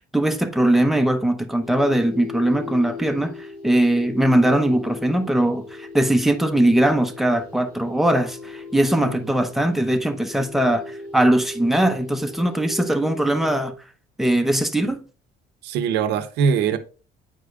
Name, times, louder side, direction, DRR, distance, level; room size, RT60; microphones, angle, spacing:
voice 1, 0.1-3.3 3.6-13.7 14.2-15.0, right 1 dB, ahead, 0.8 m, -20 dB
sound 1, 1.6-13.7, left 3 dB, 85° left, 3.5 m, -38 dB
voice 2, 15.6-16.8, right 6 dB, 85° right, 0.8 m, -22 dB
9.0 x 4.8 x 2.4 m
cardioid pair, 110°, 17 cm